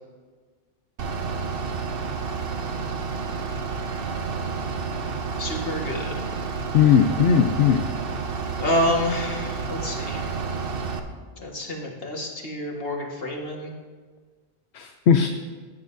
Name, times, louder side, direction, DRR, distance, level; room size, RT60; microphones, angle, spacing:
Bus / Idling, 1.0-11.0, right 5 dB, 60° right, 1.0 m, -30 dB
voice 1, 5.4-6.3 8.6-10.3 11.4-13.7, left 1 dB, 60° left, -1 dB, 1.9 m, -28 dB
voice 2, 6.7-7.8 14.7-15.3, left 7 dB, 80° left, 6 dB, 0.9 m, -18 dB
16.5 x 9.5 x 2.7 m, 1.5 s
omnidirectional pair, 1.1 m